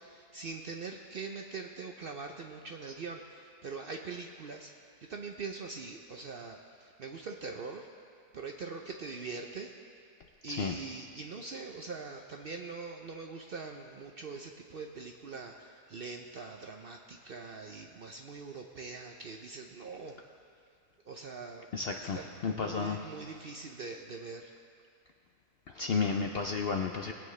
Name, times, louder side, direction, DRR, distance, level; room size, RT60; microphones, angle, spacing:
voice 1, 0.0-4.7 5.1-7.9 8.3-9.7 10.4-20.2 21.1-21.7 22.0-24.5, right 4 dB, 55° right, 3 dB, 0.6 m, -43 dB
voice 2, 21.7-22.2 22.4-23.0 25.7-27.1, left 5 dB, 60° left, 3 dB, 0.6 m, -32 dB
20.5 x 8.8 x 3.2 m, 2.2 s
omnidirectional pair, 1.5 m